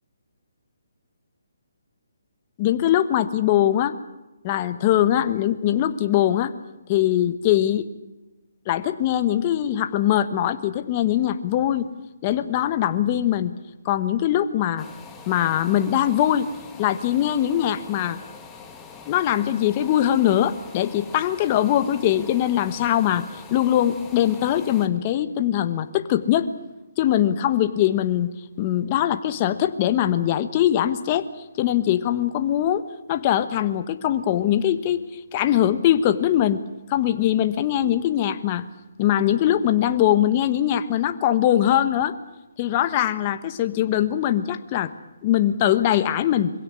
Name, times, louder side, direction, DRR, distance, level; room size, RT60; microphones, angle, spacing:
voice 1, 2.6-3.9 4.4-6.5 6.9-7.9 8.7-11.9 12.2-13.5 13.8-14.8 15.3-16.5 16.8-18.2 19.1-23.2 23.5-26.5 27.0-28.3 28.6-31.2 31.6-35.0 35.3-36.6 36.9-38.6 39.0-42.1 42.6-44.9 45.2-46.5, left 11 dB, 25° left, 10 dB, 1.2 m, -21 dB
sound 1, 14.8-24.9, left 5 dB, 10° left, 2.0 m, -43 dB
23.0 x 16.5 x 9.9 m, 1.0 s
hypercardioid pair, 160°, 0 cm